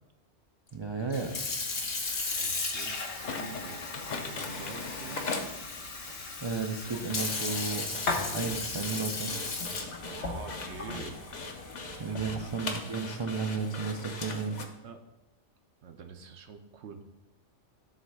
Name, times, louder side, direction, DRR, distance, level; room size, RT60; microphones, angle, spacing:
voice 1, 0.7-1.3 6.4-8.0 8.3-9.3 12.0-14.6, right 4 dB, 45° right, 3 dB, 0.3 m, -33 dB
Sink (filling or washing) / Fill (with liquid), 1.0-12.5, left 3 dB, 70° left, 1.3 m, -35 dB
voice 2, 1.6-2.0 2.3-5.3 10.0-11.2 11.9-12.6 14.8-15.0 15.8-17.2, right 5 dB, 70° right, 6 dB, 0.9 m, -47 dB
sound 1, 3.1-14.7, left 3 dB, 45° left, 0.7 m, -40 dB
7.5 x 3.2 x 6.1 m, 0.92 s
omnidirectional pair, 1.2 m